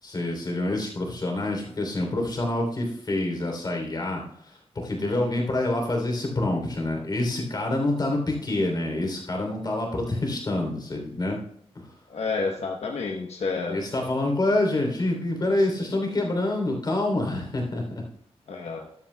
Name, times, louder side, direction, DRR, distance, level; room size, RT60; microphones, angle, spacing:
voice 1, 0.0-11.4 11.7-11.9 13.7-18.0, left 2 dB, 40° left, 1 dB, 3.3 m, -27 dB
voice 2, 12.1-13.8 18.5-18.9, left 4 dB, 85° left, 1 dB, 1.1 m, -30 dB
14.0 x 11.5 x 2.3 m, 0.68 s
wide cardioid pair, 145°, 11 cm